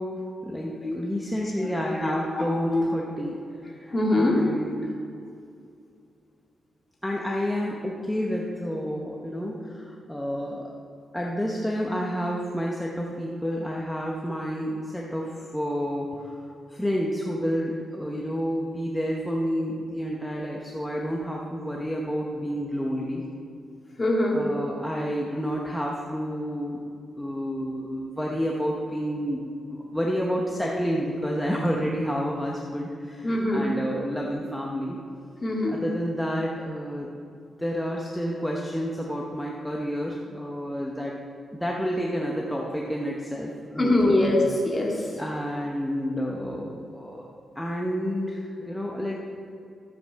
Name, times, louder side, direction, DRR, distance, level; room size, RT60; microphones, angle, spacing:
voice 1, 0.0-4.9 7.0-10.7 11.1-16.4 16.7-23.2 24.3-26.8 27.2-29.4 29.7-35.0 35.7-37.1 37.6-41.1 41.5-44.2 45.0-47.3 47.5-49.2, equal, 5° left, -2 dB, 0.8 m, -30 dB
voice 2, 1.3-2.9 3.9-4.4 24.0-24.4 33.2-33.7 35.4-35.8 43.8-44.9, left 1 dB, 20° left, -2 dB, 2.0 m, -24 dB
12.5 x 7.9 x 4.6 m, 2.4 s
wide cardioid pair, 165°, 0 cm